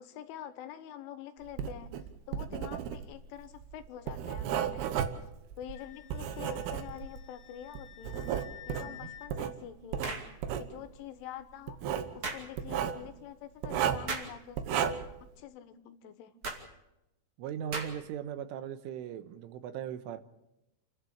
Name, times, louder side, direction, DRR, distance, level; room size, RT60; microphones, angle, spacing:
voice 1, 0.0-2.0 2.3-5.2 5.6-8.3 8.7-10.3 10.6-11.8 12.2-16.4, left 10 dB, 85° left, 10 dB, 3.7 m, -46 dB
Writing, 1.5-7.3 7.8-9.5 9.9-10.7 11.7-12.1 12.6-13.0 13.6-14.1 14.6-15.2, right 9 dB, 70° right, 2.8 m, -33 dB
Wind instrument woodwind instrument, 5.7-9.3, left 13 dB, 55° left, 3.4 m, -51 dB
sound 1, 10.0-10.3 12.2-12.5 14.1-14.4 16.4-16.6 17.7-18.1, right 3 dB, 35° right, 2.5 m, -36 dB
voice 2, 17.4-20.2, right 9 dB, 85° right, 11 dB, 3.6 m, -39 dB
29.0 x 11.0 x 8.7 m, 0.89 s
omnidirectional pair, 5.5 m